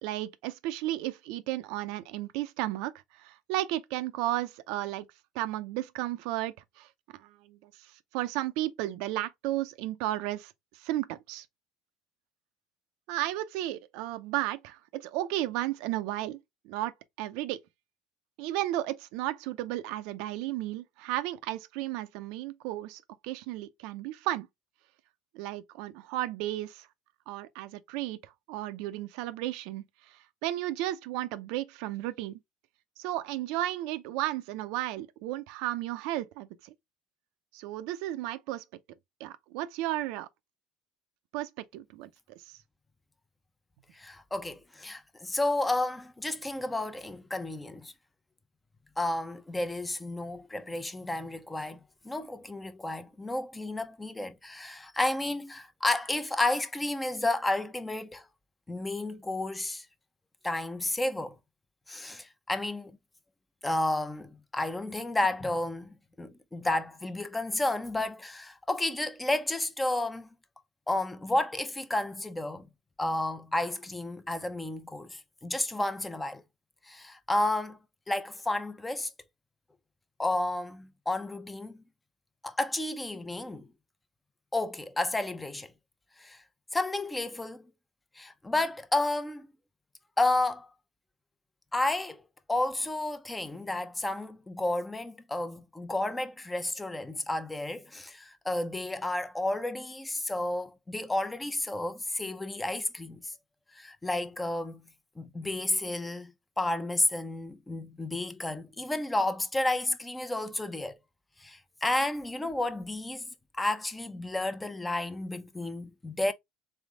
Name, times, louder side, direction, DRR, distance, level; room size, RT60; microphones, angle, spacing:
voice 1, 0.0-5.1 5.3-11.5 13.1-16.9 17.2-17.6 18.4-24.5 25.3-26.9 27.3-32.4 33.0-36.7 37.5-38.6 39.2-40.3 41.3-42.1 42.4-42.6, right 15 dB, 75° right, 0.6 m, -34 dB
voice 2, 43.9-47.9 49.0-58.3 58.7-59.9 60.4-61.3 61.9-63.0 63.6-70.3 70.9-72.7 73.0-76.4 76.8-77.8 78.1-79.1 80.2-81.8 82.4-83.7 84.5-85.7 86.2-86.4 86.7-87.7 88.2-89.5 90.2-90.7 91.7-92.2 92.5-103.3 103.7-104.8 105.2-111.0 111.4-113.3 113.5-116.3, left 2 dB, 15° left, 0.8 m, -31 dB
3.6 x 3.4 x 3.6 m
supercardioid pair, 85°, 0 cm